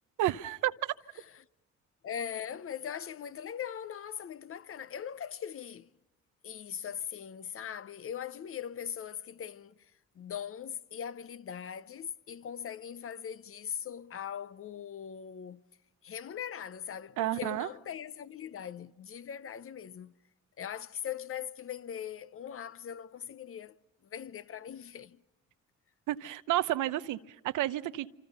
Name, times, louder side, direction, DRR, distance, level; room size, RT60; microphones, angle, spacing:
voice 1, 0.2-0.7 17.2-17.7 26.1-27.2 27.4-28.1, right 14 dB, 85° right, 0.8 m, -30 dB
voice 2, 2.0-5.9 6.4-9.9 10.2-15.6 16.0-20.1 20.6-23.7 24.0-25.2, left 9 dB, 45° left, 0.8 m, -40 dB
27.0 x 27.0 x 5.6 m
cardioid pair, 90°, 30 cm